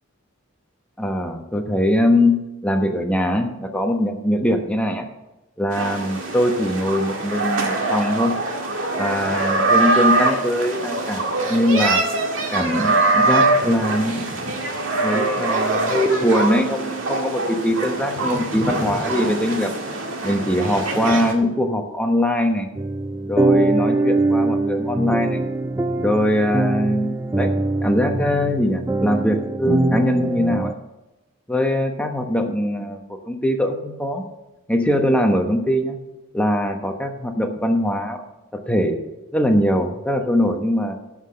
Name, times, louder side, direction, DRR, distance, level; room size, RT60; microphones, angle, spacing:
voice 1, 1.0-5.1 5.6-8.4 8.9-12.0 12.5-14.4 15.0-19.7 20.2-22.7 23.3-25.4 26.0-27.5 27.8-30.7 31.5-34.2 34.7-36.0 36.3-38.2 38.5-39.0 39.3-41.0, left 1 dB, 5° left, 3 dB, 1.0 m, -22 dB
sound 1, 5.7-21.3, right 2 dB, 80° right, 1.9 m, -23 dB
sound 2, 22.7-30.7, right 2 dB, 10° right, 0.3 m, -22 dB
12.5 x 5.9 x 6.4 m, 1.0 s
head